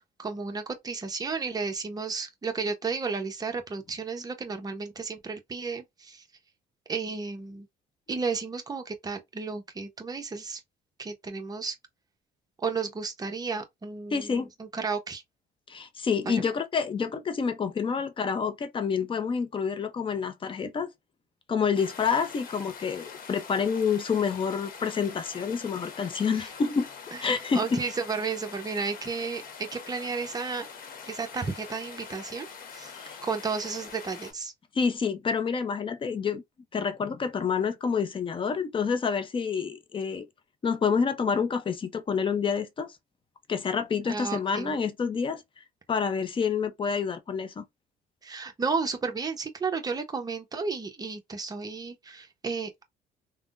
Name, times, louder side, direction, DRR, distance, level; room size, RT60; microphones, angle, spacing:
voice 1, 0.0-6.2 6.9-7.7 8.1-10.6 11.0-11.8 12.6-15.2 16.3-16.4 26.3-26.4 27.3-30.7 31.1-32.5 32.7-32.9 33.2-34.5 44.1-44.8 48.2-52.8, right 4 dB, 20° right, 0.8 m, -33 dB
voice 2, 14.1-14.5 15.7-20.9 21.5-26.9 27.2-27.8 32.9-33.1 34.7-36.4 36.7-40.3 40.6-43.0 43.5-45.4 45.9-47.6, left 6 dB, 30° left, 0.6 m, -28 dB
sound 1, 21.7-34.3, left 6 dB, 60° left, 1.0 m, -44 dB
3.5 x 2.1 x 2.5 m
cardioid pair, 110°, 17 cm